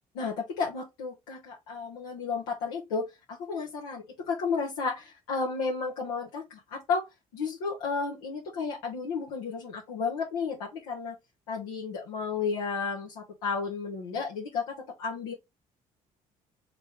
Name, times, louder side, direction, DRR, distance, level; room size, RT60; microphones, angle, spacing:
voice 1, 0.1-7.0 7.3-11.1 11.5-15.3, left 5 dB, 80° left, 1.2 m, -32 dB
3.9 x 3.2 x 3.5 m
hypercardioid pair, 55°, 17 cm